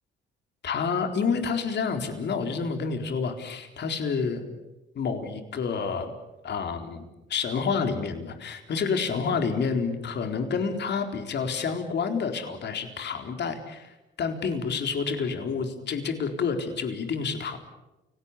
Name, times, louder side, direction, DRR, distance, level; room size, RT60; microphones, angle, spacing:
voice 1, 0.6-4.4 5.0-6.1 6.4-7.0 7.3-17.6, left 5 dB, 60° left, 6 dB, 4.1 m, -29 dB
29.5 x 18.0 x 8.6 m, 1.0 s
cardioid pair, 90°, 20 cm